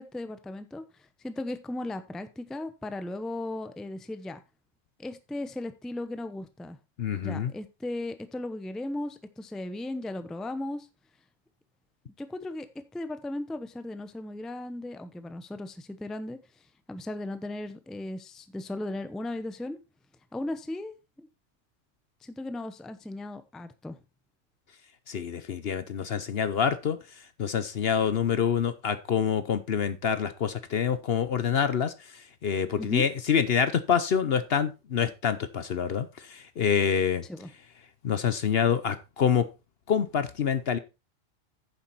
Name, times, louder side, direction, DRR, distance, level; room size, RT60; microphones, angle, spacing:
voice 1, 0.0-4.4 5.0-6.8 7.2-10.9 12.2-12.7 12.9-16.4 16.9-19.8 20.3-21.3 22.2-24.0 32.8-33.1 37.2-37.5, left 1 dB, ahead, 11 dB, 0.6 m, -36 dB
voice 2, 7.0-7.5 25.1-27.0 27.4-37.2 38.0-39.5 39.9-40.8, left 7 dB, 55° left, 12 dB, 0.9 m, -26 dB
9.5 x 7.3 x 4.2 m, 0.28 s
omnidirectional pair, 1.3 m